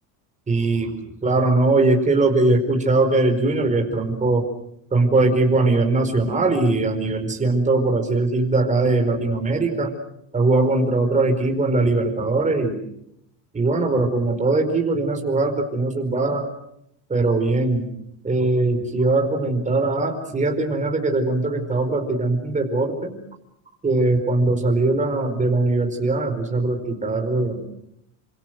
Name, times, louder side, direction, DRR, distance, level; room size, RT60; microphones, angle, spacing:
voice 1, 0.5-0.9 1.2-4.5 4.9-9.9 10.3-12.8 13.5-16.5 17.1-17.9 18.2-23.2 23.8-27.6, right 2 dB, 15° right, 4 dB, 4.9 m, -21 dB
29.0 x 27.0 x 6.5 m, 0.76 s
cardioid pair, 145°, 49 cm